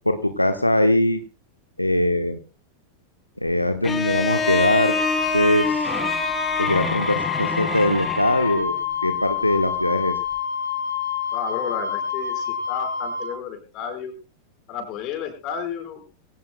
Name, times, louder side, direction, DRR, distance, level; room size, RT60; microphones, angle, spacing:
voice 1, 0.0-1.2 1.8-2.4 3.4-5.0 5.3-5.9 6.6-8.7 9.0-10.1, left 1 dB, 85° left, 8 dB, 1.1 m, -21 dB
Bowed string instrument, 3.8-8.7, left 5 dB, 20° left, 2.3 m, -26 dB
Wind instrument woodwind instrument, 4.4-13.3, left 5 dB, 75° right, 6.1 m, -28 dB
voice 2, 11.3-14.1 14.7-16.0, left 8 dB, 40° left, 6 dB, 4.9 m, -32 dB
22.5 x 17.5 x 2.2 m, 0.33 s
figure-of-eight pair, 90°, 0 cm